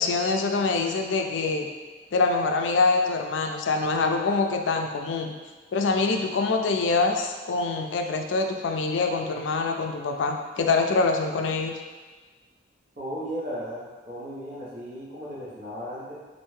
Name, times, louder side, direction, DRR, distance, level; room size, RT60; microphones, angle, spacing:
voice 1, 0.0-1.7 2.1-5.3 5.7-11.7, left 3 dB, 90° left, 4 dB, 0.4 m, -25 dB
voice 2, 13.0-16.1, equal, 50° right, -7 dB, 1.0 m, -35 dB
3.3 x 2.6 x 3.1 m, 1.3 s
head